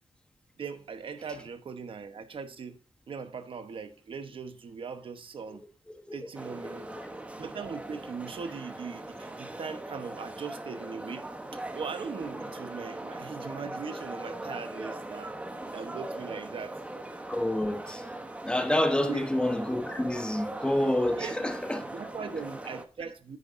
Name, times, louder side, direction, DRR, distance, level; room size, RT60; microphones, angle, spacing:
voice 1, 0.6-2.8 3.1-5.6 6.1-6.9 7.4-11.3 11.5-15.4 15.7-16.8 18.9-19.3 21.1-21.3 21.9-23.4, right 5 dB, 65° right, 1.1 m, -39 dB
sound 1, 6.3-22.8, right 1 dB, 15° right, 0.9 m, -40 dB
voice 2, 6.6-7.0 17.3-18.0 18.4-21.9, left 1 dB, 10° left, 1.1 m, -28 dB
9.4 x 9.0 x 2.6 m
wide cardioid pair, 180°, 10 cm